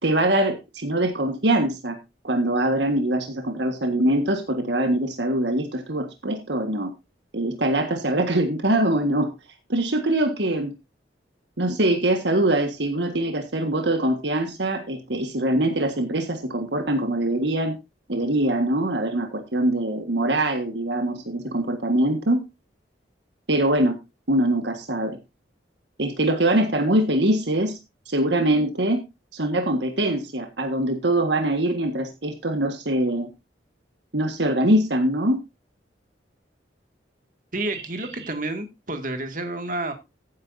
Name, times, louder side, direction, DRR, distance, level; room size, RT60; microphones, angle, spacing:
voice 1, 0.0-2.0 2.2-6.9 7.3-9.3 9.7-10.7 11.6-17.8 18.1-22.4 23.5-24.0 24.3-25.2 26.0-27.8 28.1-29.0 29.3-33.3 34.1-35.4, right 1 dB, 70° right, 1.7 m, -23 dB
voice 2, 37.5-39.9, right 2 dB, 45° right, 2.2 m, -30 dB
15.0 x 9.4 x 2.7 m
head